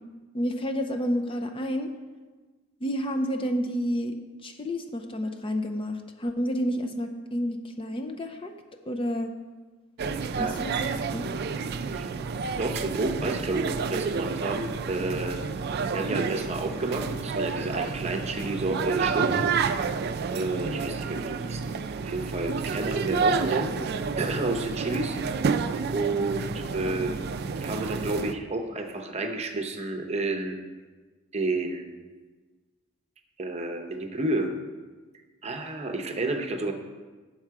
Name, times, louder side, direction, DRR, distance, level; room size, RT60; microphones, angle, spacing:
voice 1, 0.3-1.9 2.8-4.2 4.4-8.5 8.9-9.3 10.4-11.3, equal, 25° left, 6 dB, 0.5 m, -30 dB
sound 1, 10.0-28.3, right 5 dB, 55° right, 0.4 m, -30 dB
voice 2, 12.5-15.4 15.9-19.7 20.3-21.7 22.0-23.7 24.2-25.2 25.9-27.1 27.6-30.6 31.3-31.8 33.4-34.5 35.4-36.7, right 2 dB, 30° right, 4 dB, 0.8 m, -30 dB
8.7 x 6.6 x 4.7 m, 1.3 s
head